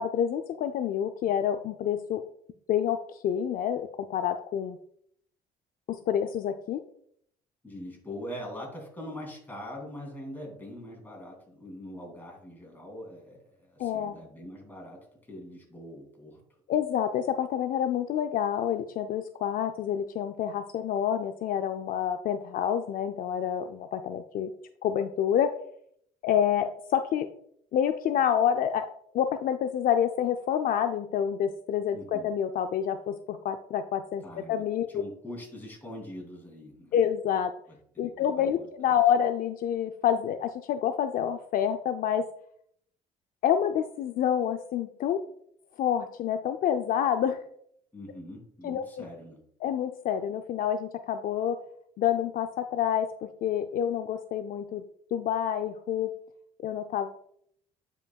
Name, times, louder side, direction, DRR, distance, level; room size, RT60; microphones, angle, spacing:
voice 1, 0.0-2.2 2.7-4.8 5.9-6.8 13.8-14.2 16.7-24.5 24.8-25.5 26.2-27.3 27.7-28.9 29.1-34.2 34.5-35.0 36.9-37.5 38.0-42.3 43.4-45.2 45.8-47.4 48.6-49.0 49.6-51.6 52.0-54.8 55.1-56.1 56.6-57.3, left 9 dB, 55° left, 7 dB, 0.4 m, -28 dB
voice 2, 7.6-15.0 15.3-16.4 31.9-32.3 34.2-37.0 37.7-38.7 47.9-49.4, left 1 dB, 10° left, -1 dB, 2.9 m, -43 dB
9.3 x 5.2 x 2.3 m, 0.67 s
cardioid pair, 110°, 17 cm